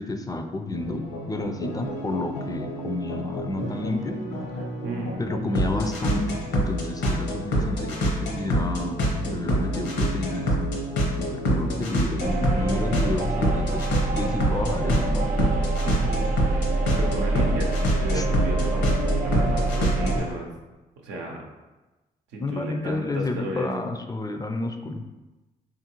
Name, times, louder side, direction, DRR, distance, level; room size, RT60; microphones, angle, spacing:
voice 1, 0.0-4.2 5.2-10.7 11.1-13.9 14.1-15.5 18.1-18.3 22.4-25.1, left 2 dB, 20° left, 6 dB, 0.4 m, -30 dB
sound 1, 0.7-20.3, equal, 75° left, 0.8 m, -27 dB
voice 2, 4.5-5.2 15.8-18.8 19.2-20.5 21.0-21.4 22.3-23.7, right 2 dB, 85° right, 0 dB, 0.7 m, -34 dB
sound 2, 12.2-20.2, right 2 dB, 50° right, 0.7 m, -26 dB
3.4 x 2.5 x 2.9 m, 1.1 s
supercardioid pair, 50°, 18 cm